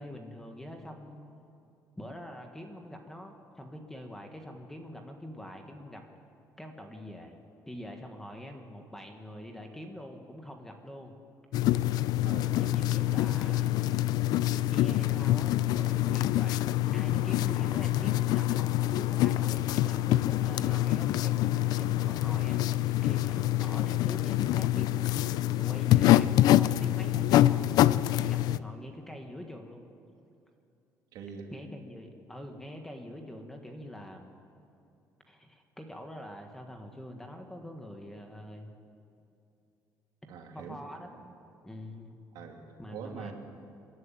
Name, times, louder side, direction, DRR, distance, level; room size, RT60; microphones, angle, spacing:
voice 1, 0.0-1.3 2.0-6.0 6.6-7.4 7.6-11.1 12.6-13.9 14.5-27.8 28.2-29.8 31.5-34.3 35.3-38.7 40.2-41.3 41.6-42.1 42.8-43.3, left 1 dB, 5° left, 4 dB, 1.5 m, -44 dB
sound 1, 11.5-28.6, left 14 dB, 75° left, 0.5 m, -26 dB
voice 2, 12.2-12.5 31.1-31.5 40.3-40.8 42.3-42.6 42.9-43.3, right 7 dB, 75° right, 2 dB, 2.8 m, -43 dB
27.0 x 11.0 x 9.1 m, 2.6 s
cardioid pair, 170°, 7 cm